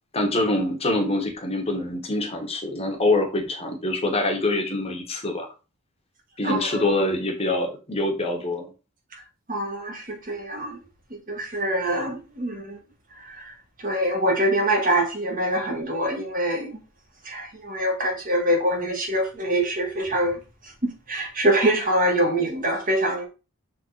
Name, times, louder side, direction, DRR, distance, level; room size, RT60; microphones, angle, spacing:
voice 1, 0.1-5.5 6.4-8.7, left 2 dB, 25° left, 1.4 m, -25 dB
voice 2, 6.4-6.8 9.5-10.8 11.3-12.8 13.4-13.5 13.8-16.7 17.2-20.4 20.8-23.3, right 1 dB, 40° right, 1.7 m, -24 dB
6.4 x 3.8 x 4.1 m
head